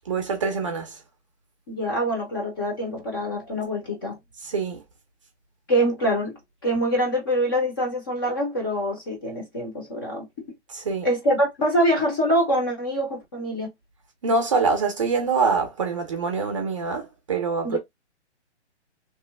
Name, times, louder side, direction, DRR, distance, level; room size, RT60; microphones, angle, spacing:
voice 1, 0.1-1.0 4.4-4.8 10.7-11.1 14.2-17.8, right 4 dB, 30° right, 0.6 m, -25 dB
voice 2, 1.7-4.2 5.7-10.4 11.0-13.7 17.6-17.8, equal, 20° left, 0.6 m, -25 dB
3.0 x 2.1 x 3.3 m
hypercardioid pair, 160°, 35 cm